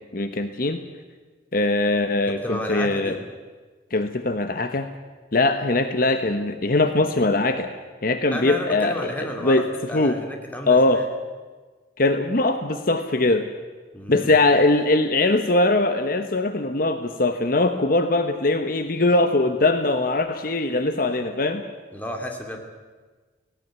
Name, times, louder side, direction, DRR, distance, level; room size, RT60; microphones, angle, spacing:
voice 1, 0.1-0.8 1.5-3.2 3.9-4.9 5.3-7.7 8.0-9.7 9.9-10.2 10.7-11.1 12.0-13.5 14.1-21.6, left 2 dB, 50° left, 8 dB, 1.1 m, -21 dB
voice 2, 2.2-3.2 8.3-11.1 13.9-14.4 21.9-22.6, equal, 10° left, 3 dB, 2.6 m, -32 dB
18.0 x 17.5 x 9.5 m, 1.4 s
head